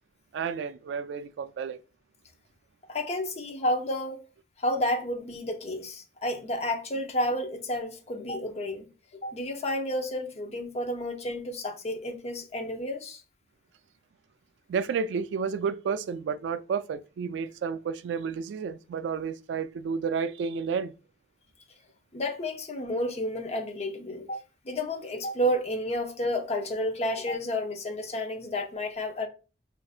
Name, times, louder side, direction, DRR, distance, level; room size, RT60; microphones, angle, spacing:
voice 1, 0.3-1.8 14.7-20.9, right 6 dB, 85° right, 0.3 m, -31 dB
voice 2, 2.9-4.2 4.6-8.9 9.2-13.2 22.1-24.4 24.6-29.3, left 1 dB, 40° left, 0.6 m, -31 dB
4.8 x 2.5 x 2.3 m
head